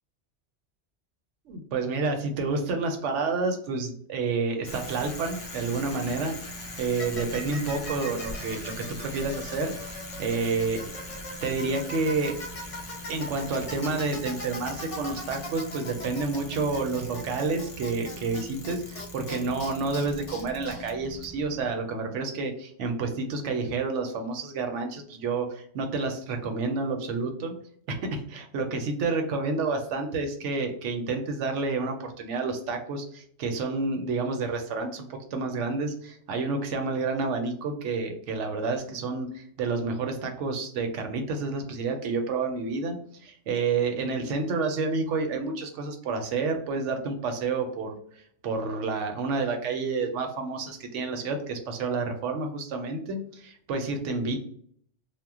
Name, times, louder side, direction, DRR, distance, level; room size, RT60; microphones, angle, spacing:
voice 1, 1.5-6.3 6.8-10.8 11.4-12.4 13.1-27.5 27.9-43.0 43.2-48.0 48.4-54.4, right 4 dB, 85° right, 4 dB, 0.9 m, -29 dB
Bicycle, 4.6-21.7, left 1 dB, 55° left, 0.4 m, -39 dB
2.1 x 2.1 x 3.5 m, 0.62 s
omnidirectional pair, 1.2 m